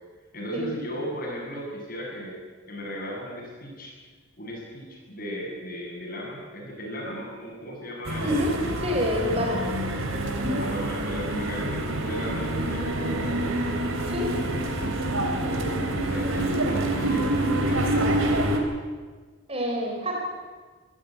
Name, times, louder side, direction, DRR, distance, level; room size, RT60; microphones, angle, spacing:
voice 1, 0.3-2.4 2.7-3.9 4.4-9.1 9.7-9.9 10.6-13.5 15.3-18.3, equal, 45° left, -2 dB, 7.9 m, -36 dB
sound 1, 8.0-18.6, right 1 dB, 85° right, 3.7 m, -27 dB
voice 2, 8.2-9.7 10.4-10.6 14.0-14.4 19.5-20.3, left 1 dB, 30° right, 0 dB, 4.7 m, -27 dB
25.5 x 15.5 x 9.2 m, 1.4 s
head